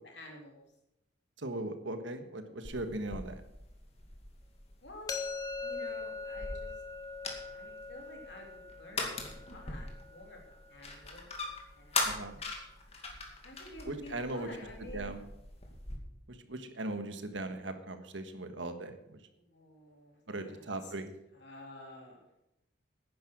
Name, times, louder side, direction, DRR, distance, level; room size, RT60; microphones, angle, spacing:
voice 1, 0.0-0.7 4.8-5.1 5.6-6.7 7.5-11.3 11.7-12.3 13.4-15.1 18.8-20.9 21.3-22.3, left 1 dB, 65° left, 1 dB, 3.4 m, -51 dB
voice 2, 1.4-3.4 12.0-12.4 13.9-14.5 14.9-15.2 16.5-18.9 20.3-21.1, right 2 dB, 85° right, 8 dB, 1.4 m, -38 dB
sound 1, 2.6-16.0, left 3 dB, 35° left, 2.2 m, -41 dB
sound 2, 5.1-10.9, left 4 dB, 20° left, 1.0 m, -42 dB
11.0 x 10.0 x 6.0 m, 0.85 s
head